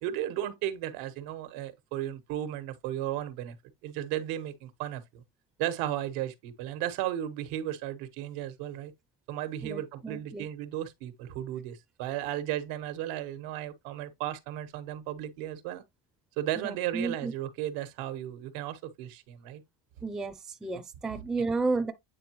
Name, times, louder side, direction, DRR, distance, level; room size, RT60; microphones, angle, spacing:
voice 1, 0.0-3.5 3.8-5.2 5.6-8.9 9.3-15.8 16.4-19.6, right 12 dB, 85° right, 1.4 m, -35 dB
voice 2, 9.6-10.5 16.6-17.3 20.0-21.9, right 3 dB, ahead, 0.4 m, -32 dB
8.8 x 3.8 x 3.0 m
cardioid pair, 135°, 49 cm